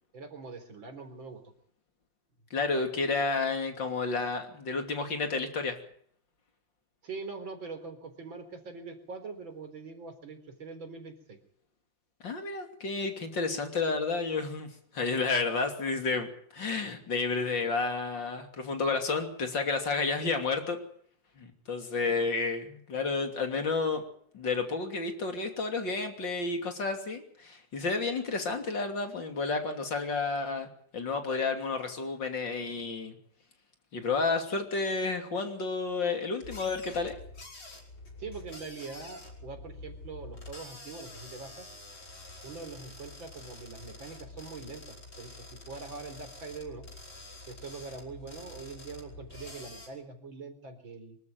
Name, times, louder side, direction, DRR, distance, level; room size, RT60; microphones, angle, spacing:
voice 1, 0.1-1.4 7.0-11.4 38.2-41.7 42.4-45.3 45.7-46.9 47.5-51.2, right 4 dB, 85° right, 6 dB, 4.6 m, -43 dB
voice 2, 2.5-5.8 12.2-14.7 14.9-20.8 21.4-24.0 24.3-30.7 30.9-33.2 33.9-37.2, left 4 dB, 70° left, 5 dB, 3.6 m, -31 dB
sound 1, 36.4-49.9, left 2 dB, 85° left, 6.4 m, -47 dB
25.5 x 13.0 x 9.3 m, 0.64 s
omnidirectional pair, 2.1 m